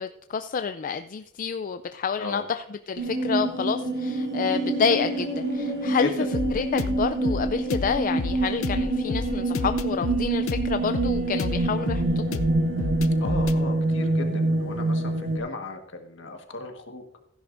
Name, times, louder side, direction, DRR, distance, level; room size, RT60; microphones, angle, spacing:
voice 1, 0.0-6.1 6.5-12.2, left 6 dB, 40° left, 9 dB, 0.4 m, -28 dB
sound 1, 3.0-15.4, right 2 dB, 60° right, 1.9 m, -26 dB
sound 2, 6.3-13.6, left 3 dB, 85° left, 0.6 m, -31 dB
voice 2, 13.2-17.0, left 3 dB, 65° left, 4 dB, 1.5 m, -36 dB
15.5 x 10.5 x 2.6 m, 0.75 s
head